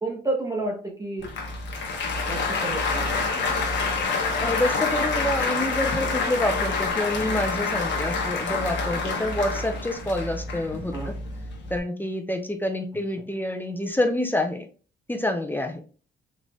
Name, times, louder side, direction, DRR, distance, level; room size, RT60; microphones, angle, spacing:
voice 1, 0.0-1.3 2.3-3.8 10.9-11.2, right 2 dB, 15° right, -1 dB, 1.1 m, -31 dB
Applause, 1.2-11.8, left 4 dB, 65° left, 1.1 m, -27 dB
voice 2, 4.4-10.9 11.7-14.7 15.1-15.8, left 1 dB, 10° left, 5 dB, 0.6 m, -27 dB
3.9 x 3.2 x 2.3 m, 0.38 s
cardioid pair, 90°, 20 cm